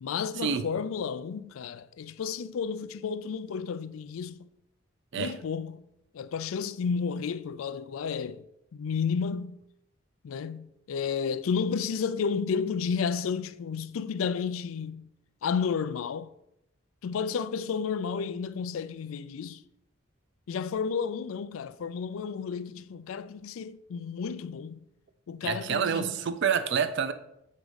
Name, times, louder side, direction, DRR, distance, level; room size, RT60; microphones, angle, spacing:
voice 1, 0.0-4.5 5.2-5.8 6.1-8.4 8.7-9.6 10.2-15.1 15.4-16.3 17.0-19.6 20.5-24.8 25.3-26.1, left 6 dB, 80° left, 0.4 m, -32 dB
voice 2, 25.4-27.1, right 7 dB, 55° right, 0.4 m, -28 dB
7.5 x 3.6 x 5.2 m
head